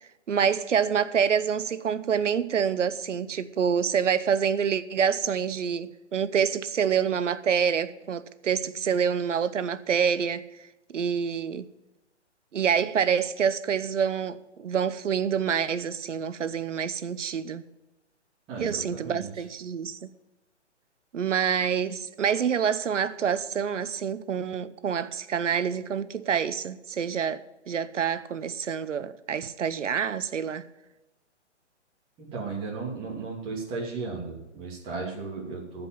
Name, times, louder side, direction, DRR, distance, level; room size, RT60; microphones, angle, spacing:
voice 1, 0.3-10.5 10.9-11.7 12.5-17.7 18.6-20.1 21.1-30.6, right 7 dB, 85° right, 0.9 m, -27 dB
voice 2, 18.5-19.3 32.2-35.9, right 4 dB, 15° right, 2.7 m, -35 dB
14.0 x 5.4 x 9.4 m
hypercardioid pair, 160°, 36 cm